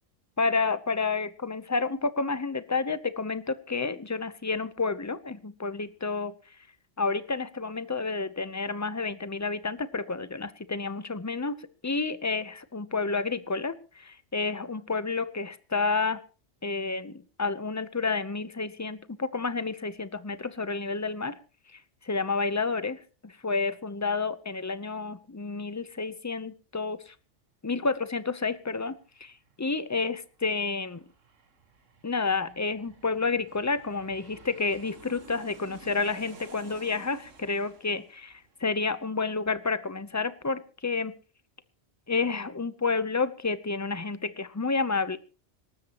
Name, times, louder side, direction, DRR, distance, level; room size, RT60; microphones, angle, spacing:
voice 1, 0.4-6.3 7.0-11.6 11.8-16.2 16.6-21.4 21.7-27.1 27.6-28.9 29.2-31.0 32.0-41.1 42.1-45.2, left 4 dB, 15° left, 14 dB, 0.7 m, -30 dB
Aircraft, 28.3-39.6 39.9-40.0, right 4 dB, 85° right, 1.9 m, -53 dB
26.5 x 13.0 x 3.0 m, 0.35 s
omnidirectional pair, 1.3 m